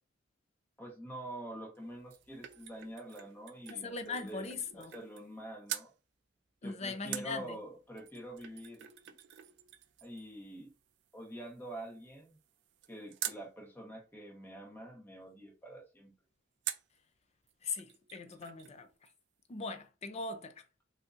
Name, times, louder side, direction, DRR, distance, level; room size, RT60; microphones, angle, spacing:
voice 1, 0.8-5.9 6.6-8.9 10.0-10.7 11.1-12.4 12.9-16.1, right 1 dB, 10° left, 1.0 m, -46 dB
sound 1, 1.8-5.4 5.7-5.9 7.1-13.5 16.6-17.0 17.5-17.6 17.8-18.8 19.1-19.2, right 12 dB, 55° right, 0.4 m, -46 dB
voice 2, 3.7-4.9 6.6-7.6 17.6-18.9 19.5-20.5, left 4 dB, 30° left, 0.4 m, -40 dB
3.6 x 2.7 x 2.5 m
head